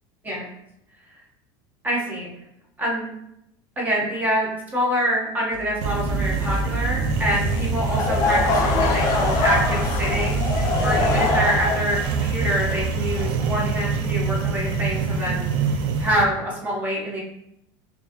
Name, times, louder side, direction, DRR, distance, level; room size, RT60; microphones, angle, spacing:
voice 1, 1.8-2.3 2.8-3.1 3.8-15.5 16.0-17.2, equal, 15° right, -4 dB, 1.0 m, -25 dB
sound 1, 5.5-11.3, left 6 dB, 70° left, 0.4 m, -33 dB
sound 2, 5.8-16.2, right 4 dB, 45° right, 0.4 m, -25 dB
Laughter / Crowd, 7.8-13.7, left 3 dB, 30° left, 0.6 m, -24 dB
4.4 x 2.7 x 2.9 m, 0.80 s
cardioid pair, 165°, 11 cm